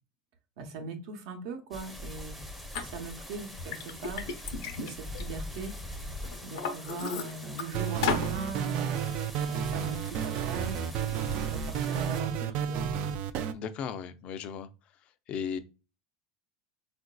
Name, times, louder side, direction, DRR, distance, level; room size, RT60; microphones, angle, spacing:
voice 1, 0.6-2.4 2.8-4.3 4.8-5.7 6.4-8.9 9.5-12.9, right 4 dB, 70° right, 0.8 m, -40 dB
sound 1, 1.7-12.2, left 1 dB, ahead, 0.6 m, -43 dB
Liquid, 2.7-2.8 3.4-5.8 6.2-7.6 8.0-8.3, left 5 dB, 80° left, 0.7 m, -34 dB
sound 2, 7.7-13.5, right 8 dB, 50° right, 0.3 m, -31 dB
voice 2, 13.5-14.7 15.3-15.6, left 7 dB, 40° left, 0.4 m, -36 dB
3.8 x 2.5 x 2.2 m
supercardioid pair, 135°, 3 cm